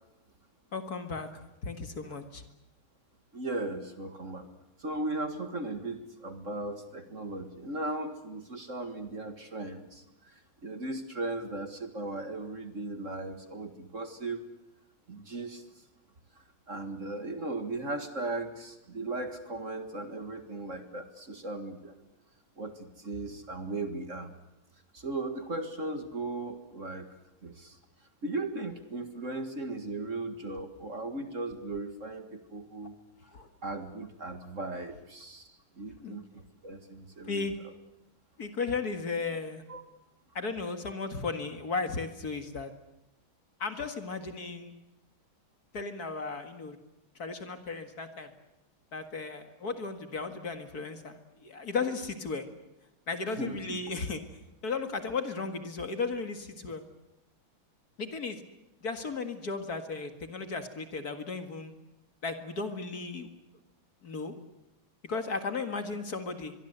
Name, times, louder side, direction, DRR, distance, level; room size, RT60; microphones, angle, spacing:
voice 1, 0.7-1.3 1.6-2.4 33.3-33.5 36.0-36.2 37.3-37.5 38.4-39.6 40.3-42.7 43.6-44.7 45.7-46.8 47.2-48.3 48.9-52.5 53.1-54.2 54.6-56.8 58.0-58.4 58.8-61.7 62.2-63.3 64.0-64.4 65.0-66.5, left 4 dB, 50° left, 7 dB, 2.3 m, -35 dB
voice 2, 3.3-4.5 4.8-10.0 10.3-14.5 15.1-15.6 16.7-21.9 22.6-24.3 24.9-27.1 27.4-27.8 28.2-33.0 33.6-35.5 35.8-37.5 39.7-39.8 53.4-53.8, right 2 dB, 40° right, 8 dB, 2.1 m, -37 dB
23.5 x 23.5 x 8.1 m, 0.95 s
omnidirectional pair, 2.2 m